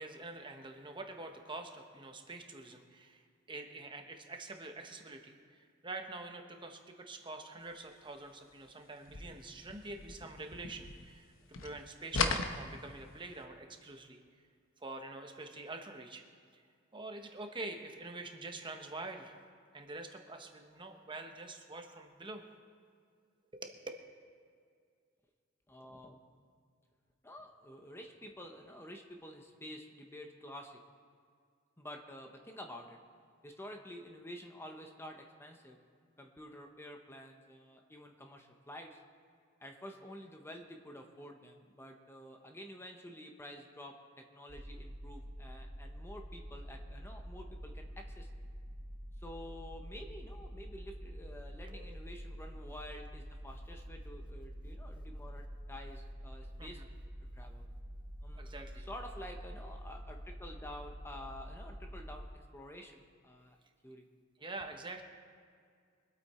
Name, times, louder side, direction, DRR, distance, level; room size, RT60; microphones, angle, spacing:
voice 1, 0.0-3.2 3.5-5.4 5.8-11.3 11.6-14.2 14.8-16.2 16.9-19.4 19.7-22.4 23.5-23.9 51.7-52.0 56.6-56.9 58.4-58.9 64.4-65.0, right 2 dB, 25° right, 4 dB, 1.0 m, -46 dB
sound 1, 9.0-11.3 11.5-13.3, left 4 dB, 70° left, 1.0 m, -37 dB
voice 2, 25.7-26.2 27.2-30.8 31.8-33.0 33.4-35.8 36.2-39.0 39.6-48.4 49.2-56.8 57.3-57.7 58.2-63.6 63.8-64.1, equal, 10° left, 3 dB, 0.9 m, -50 dB
sound 2, 44.5-62.3, equal, 60° right, 1.0 m, -47 dB
23.5 x 8.4 x 4.3 m, 2.2 s
head